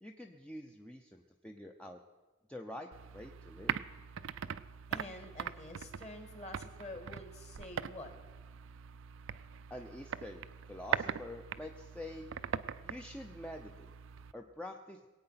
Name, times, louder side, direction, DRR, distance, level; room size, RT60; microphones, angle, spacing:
voice 1, 0.0-2.0 2.5-3.8 9.7-12.3 12.8-13.9 14.3-15.0, left 1 dB, 5° left, 3 dB, 0.6 m, -46 dB
sound 1, 2.9-14.3, right 7 dB, 60° right, 0.4 m, -41 dB
voice 2, 4.9-8.1, left 1 dB, 30° left, 6 dB, 1.8 m, -47 dB
21.5 x 8.8 x 5.8 m, 1.2 s
head